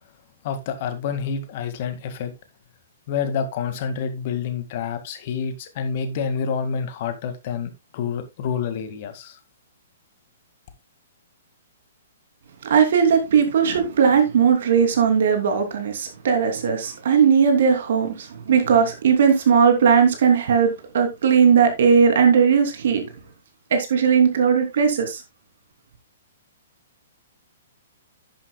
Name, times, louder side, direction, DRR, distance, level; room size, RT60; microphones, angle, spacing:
voice 1, 0.4-2.3 3.1-9.4, left 6 dB, 45° left, 2.0 m, -28 dB
voice 2, 12.6-23.0 23.7-25.2, right 6 dB, 60° right, 2.9 m, -18 dB
10.5 x 10.5 x 2.3 m
figure-of-eight pair, 120°, 0 cm